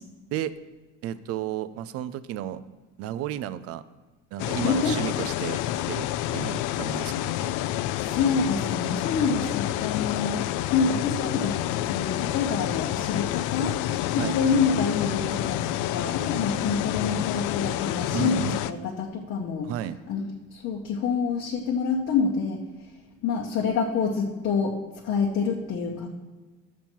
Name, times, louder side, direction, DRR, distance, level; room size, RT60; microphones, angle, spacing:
voice 1, 1.0-2.6 3.0-3.8 4.3-6.1 6.3-7.6 14.2-14.4 18.1-18.6 19.6-20.0, right 11 dB, 50° right, 15 dB, 0.5 m, -32 dB
sound 1, 4.4-18.7, left 14 dB, 80° left, 0.5 m, -28 dB
voice 2, 4.5-4.9 8.0-13.8 14.1-19.7 20.1-22.6 23.2-24.8 25.0-26.1, left 5 dB, 45° left, -1 dB, 0.9 m, -27 dB
12.0 x 7.3 x 4.5 m, 1.3 s
cardioid pair, 175°, 30 cm